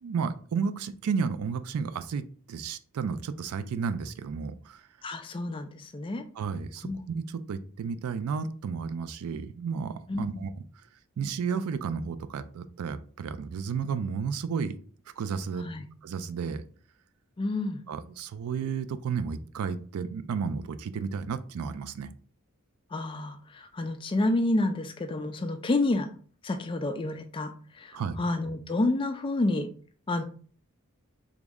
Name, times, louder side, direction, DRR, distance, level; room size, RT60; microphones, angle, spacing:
voice 1, 0.0-4.8 6.4-10.5 11.2-14.7 15.2-15.7 16.0-16.6 17.9-22.1 27.9-28.2, right 6 dB, 80° right, 12 dB, 0.3 m, -32 dB
voice 2, 5.0-6.2 6.8-7.0 10.1-10.5 15.6-15.8 17.4-17.8 22.9-26.1 26.4-27.9 28.2-29.7 30.1-30.2, left 2 dB, 25° left, 7 dB, 0.3 m, -29 dB
3.5 x 2.0 x 3.5 m, 0.43 s
head